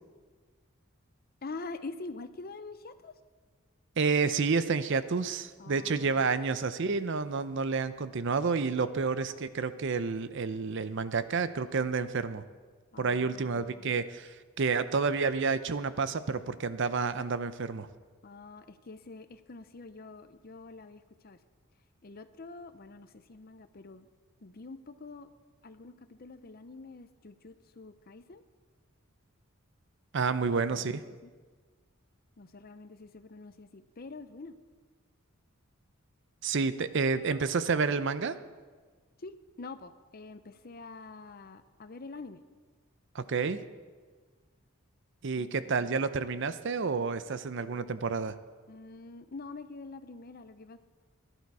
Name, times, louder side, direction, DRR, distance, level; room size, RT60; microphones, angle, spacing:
voice 1, 1.4-3.1 5.6-6.3 12.9-13.9 18.2-21.4 22.0-24.1 24.4-25.3 25.6-28.4 30.7-31.3 32.4-34.6 39.2-42.4 45.4-45.9 48.7-50.8, left 3 dB, 45° left, 11 dB, 0.6 m, -46 dB
voice 2, 4.0-12.4 13.0-17.9 30.1-31.0 36.4-38.3 43.1-43.6 45.2-48.4, right 4 dB, 55° right, 13 dB, 0.6 m, -29 dB
16.0 x 11.0 x 4.7 m, 1.5 s
head